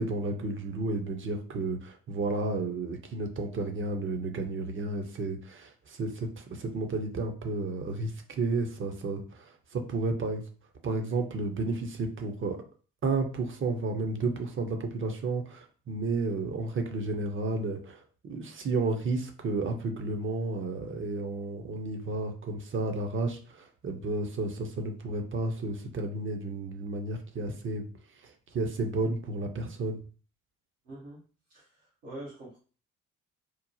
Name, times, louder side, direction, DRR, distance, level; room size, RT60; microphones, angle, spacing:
voice 1, 0.0-10.4 10.8-12.6 13.0-27.9 28.2-30.0, right 3 dB, 35° right, 5 dB, 0.6 m, -32 dB
voice 2, 30.8-31.2 31.5-32.6, right 1 dB, 80° right, -9 dB, 1.0 m, -44 dB
3.0 x 2.1 x 2.6 m, 0.39 s
hypercardioid pair, 45°, 37 cm